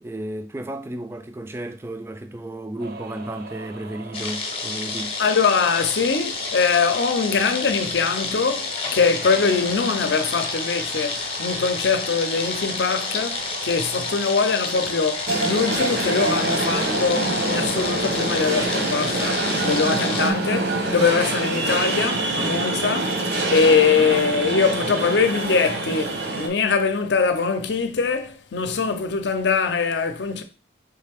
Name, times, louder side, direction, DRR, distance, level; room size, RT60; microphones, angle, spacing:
voice 1, 0.0-5.2, right 1 dB, 15° right, 0.3 m, -33 dB
sound 1, 2.8-21.3, right 3 dB, 60° right, 0.6 m, -39 dB
sound 2, 4.1-20.3, left 4 dB, 30° left, 0.6 m, -30 dB
voice 2, 5.2-30.4, left 5 dB, 80° left, 0.6 m, -22 dB
sound 3, 15.3-26.5, right 2 dB, 75° right, 0.9 m, -25 dB
3.7 x 3.2 x 3.4 m
head